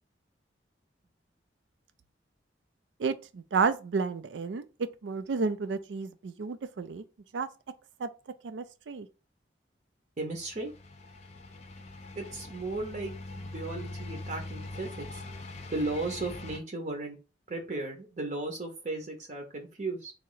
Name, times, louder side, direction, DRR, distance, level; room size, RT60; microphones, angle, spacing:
voice 1, 3.0-4.7 5.0-7.0 7.3-7.5 8.0-8.1 8.4-9.1, right 5 dB, 85° right, 0.4 m, -31 dB
voice 2, 10.2-10.7 12.1-15.2 15.7-17.2 17.5-20.1, right 2 dB, 45° right, 0.7 m, -35 dB
sound 1, 10.3-16.6, left 2 dB, 40° left, 0.6 m, -42 dB
3.1 x 2.8 x 3.8 m
head